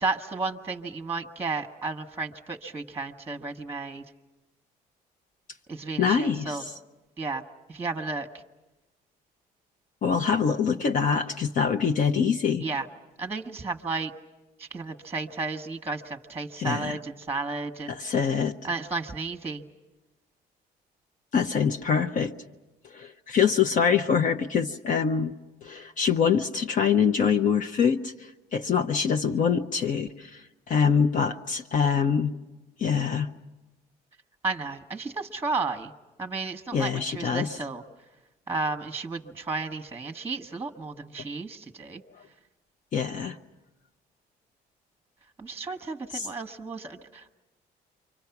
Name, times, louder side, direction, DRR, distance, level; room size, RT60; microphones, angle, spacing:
voice 1, 0.0-4.0 5.7-6.6 7.2-7.4 7.7-8.3 12.6-12.9 13.2-14.1 14.6-18.1 18.6-19.6 34.4-35.9 36.2-37.8 38.5-42.0 45.4-47.3, right 3 dB, 15° right, 6 dB, 1.1 m, -33 dB
voice 2, 6.0-6.6 10.0-12.7 16.6-17.0 17.9-18.6 21.3-22.3 22.9-25.3 25.6-32.3 32.8-33.3 36.7-37.6 42.9-43.4 46.1-46.3, left 6 dB, 50° left, 6 dB, 0.8 m, -24 dB
28.5 x 24.5 x 5.9 m, 1.1 s
cardioid pair, 110°, 17 cm